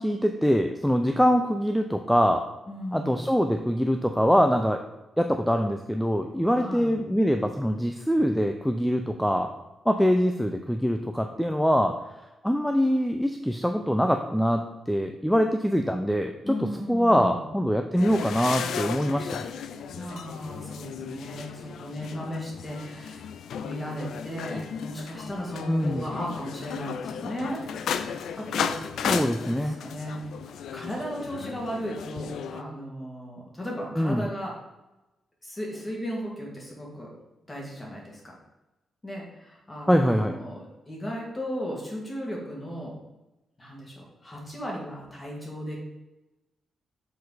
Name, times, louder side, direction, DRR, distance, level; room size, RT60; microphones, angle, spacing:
voice 1, 0.0-2.4 2.9-4.8 5.2-9.5 9.9-12.0 12.4-16.5 16.9-19.5 25.7-26.0 29.1-29.8 34.0-34.3 39.9-40.3, equal, ahead, 5 dB, 0.4 m, -24 dB
voice 2, 2.7-3.2 6.5-6.9 16.4-17.4 19.9-23.2 23.6-29.1 29.4-30.2 30.7-34.6 35.4-37.1 37.5-38.4 39.0-42.9 43.6-45.8, equal, 20° left, -3 dB, 2.2 m, -36 dB
sound 1, 18.0-32.6, left 7 dB, 80° left, 0.4 m, -35 dB
6.5 x 4.4 x 4.1 m, 1.0 s
cardioid pair, 100°, 0 cm